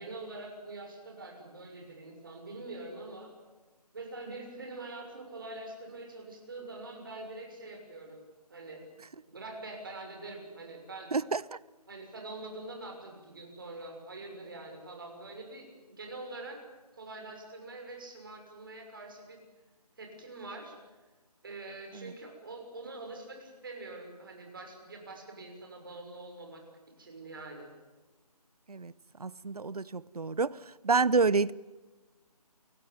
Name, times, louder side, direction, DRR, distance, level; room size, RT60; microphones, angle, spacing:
voice 1, 0.0-3.3 3.9-8.2 8.5-8.9 9.3-11.1 11.9-16.6 17.0-19.4 20.0-20.8 21.4-26.6 27.0-27.7, right 2 dB, 35° right, 6.4 m, -44 dB
voice 2, 11.1-11.6 21.9-22.1 28.7-28.9 29.2-31.5, right 4 dB, 70° right, 0.9 m, -29 dB
29.0 x 16.5 x 9.8 m
figure-of-eight pair, 175°, 20 cm